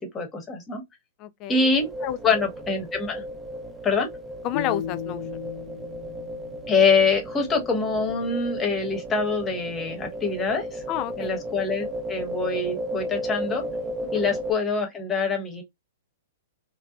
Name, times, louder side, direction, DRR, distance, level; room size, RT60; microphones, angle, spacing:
voice 1, 0.1-0.8 1.5-1.9 2.2-3.2 3.8-4.1 6.7-10.8 11.2-13.6 14.1-15.6, left 4 dB, 20° left, 0.9 m, -24 dB
voice 2, 1.2-1.7 2.0-2.2 4.4-5.2 10.9-11.3 14.0-14.2, left 11 dB, 35° left, 0.3 m, -30 dB
sound 1, 1.7-14.5, equal, 15° right, 0.5 m, -34 dB
sound 2, 4.5-7.7, left 10 dB, 60° left, 0.7 m, -36 dB
2.6 x 2.1 x 2.3 m
hypercardioid pair, 115°, 0 cm